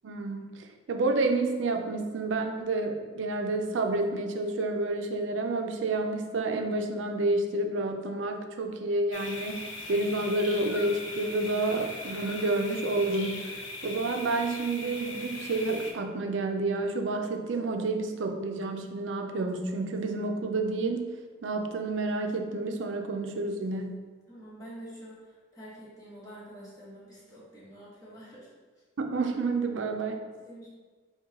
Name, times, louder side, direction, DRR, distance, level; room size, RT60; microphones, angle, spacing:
voice 1, 0.0-21.1 21.4-24.0 29.0-30.2, right 2 dB, 75° right, 5 dB, 0.4 m, -29 dB
sound 1, 9.1-15.9, left 2 dB, 80° left, 0.6 m, -40 dB
voice 2, 24.3-28.5 30.4-30.7, right 1 dB, 20° left, -8 dB, 1.2 m, -47 dB
4.6 x 2.3 x 4.1 m, 1.4 s
head